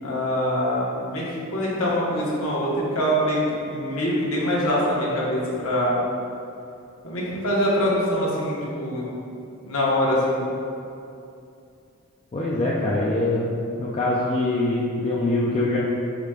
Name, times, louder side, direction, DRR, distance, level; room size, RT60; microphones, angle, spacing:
voice 1, 0.0-1.2 1.5-3.4 3.7-6.1 7.0-9.1 9.6-10.4, equal, 65° left, -5 dB, 1.1 m, -24 dB
voice 2, 12.3-13.5 13.8-15.8, left 2 dB, 25° left, -6 dB, 0.4 m, -23 dB
4.9 x 2.2 x 4.8 m, 2.6 s
head